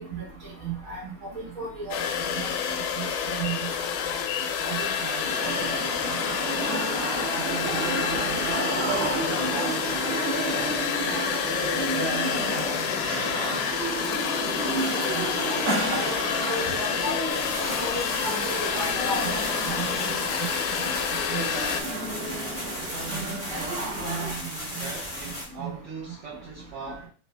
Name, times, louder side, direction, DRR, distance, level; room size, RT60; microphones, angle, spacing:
voice 1, 0.6-1.9 2.3-3.5 14.6-14.7 15.4-16.1 16.5-17.1 17.8-18.3 18.7-19.3 19.7-19.9 21.3-21.4, right 2 dB, 40° right, 1.0 m, -34 dB
sound 1, 1.9-21.8, left 7 dB, 85° left, 2.0 m, -28 dB
voice 2, 4.4-6.4 7.3-10.9 11.6-14.0 22.6-27.1, right 5 dB, 75° right, 1.3 m, -39 dB
sound 2, 5.2-24.3, right 2 dB, 60° right, 1.8 m, -32 dB
sound 3, 17.3-25.4, left 1 dB, 65° left, 0.4 m, -36 dB
5.0 x 2.3 x 2.2 m
omnidirectional pair, 3.4 m